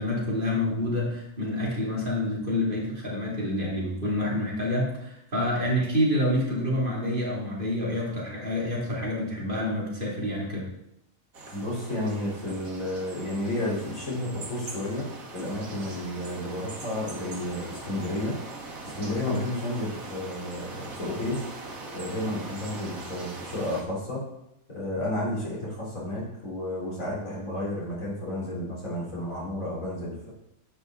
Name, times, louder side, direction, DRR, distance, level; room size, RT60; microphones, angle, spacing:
voice 1, 0.0-10.7, left 1 dB, 35° right, -5 dB, 3.2 m, -28 dB
sound 1, 11.3-23.8, right 2 dB, 75° right, 2.0 m, -41 dB
voice 2, 11.5-18.4 18.8-21.4 21.9-24.2 24.7-30.3, left 1 dB, 70° left, -5 dB, 4.3 m, -32 dB
10.0 x 8.4 x 3.9 m, 0.82 s
omnidirectional pair, 1.5 m